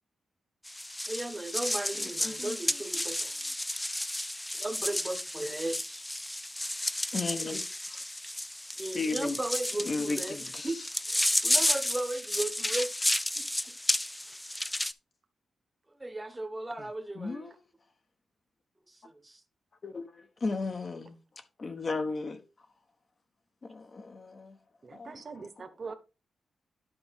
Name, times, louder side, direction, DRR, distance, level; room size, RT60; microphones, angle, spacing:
sound 1, 0.7-14.9, left 1 dB, 10° left, 0.4 m, -32 dB
voice 1, 1.1-3.4 4.5-6.0 8.8-10.4 10.6-10.8 11.0-12.9 13.4-13.6 14.3-14.4 16.0-17.5 18.9-19.4, right 2 dB, 15° right, 1.0 m, -36 dB
voice 2, 2.0-2.5 7.1-7.6 7.9-8.0 8.9-9.4 9.9-10.7 17.2-17.5 19.8-21.2 21.6-22.4 23.6-24.6 24.9-25.4, left 3 dB, 35° left, 1.1 m, -35 dB
voice 3, 24.8-25.9, right 4 dB, 40° right, 1.1 m, -42 dB
11.0 x 5.3 x 3.6 m
wide cardioid pair, 120°, 0 cm